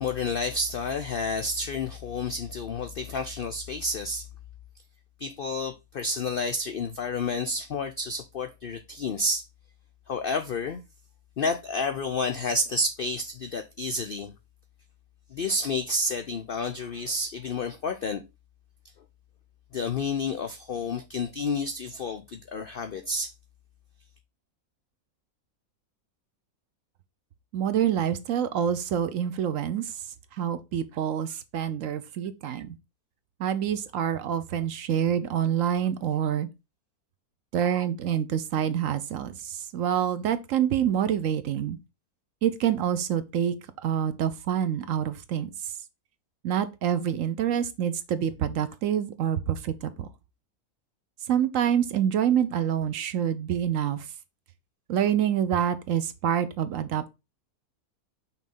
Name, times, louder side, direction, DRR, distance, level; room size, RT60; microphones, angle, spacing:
voice 1, 0.0-4.3 5.2-9.5 10.1-10.8 11.4-14.3 15.3-18.2 19.7-23.3, left 2 dB, 80° left, 0.5 m, -30 dB
voice 2, 27.5-29.9 30.3-32.7 33.4-36.5 37.5-41.8 42.4-43.5 43.8-45.7 46.4-50.1 51.3-54.1 54.9-57.1, right 9 dB, 65° right, 1.0 m, -27 dB
5.7 x 3.2 x 5.3 m
omnidirectional pair, 1.6 m